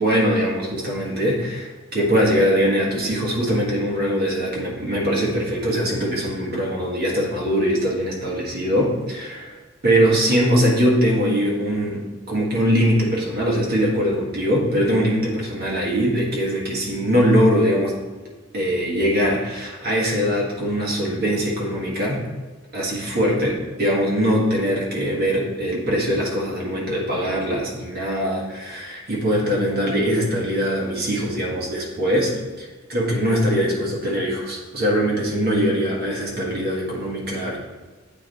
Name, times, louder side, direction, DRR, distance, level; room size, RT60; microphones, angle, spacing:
voice 1, 0.0-9.6 9.8-12.0 12.3-17.9 18.5-22.2 22.7-32.3 32.6-37.6, equal, 55° right, -3 dB, 1.6 m, -22 dB
8.3 x 3.4 x 4.0 m, 1.3 s
head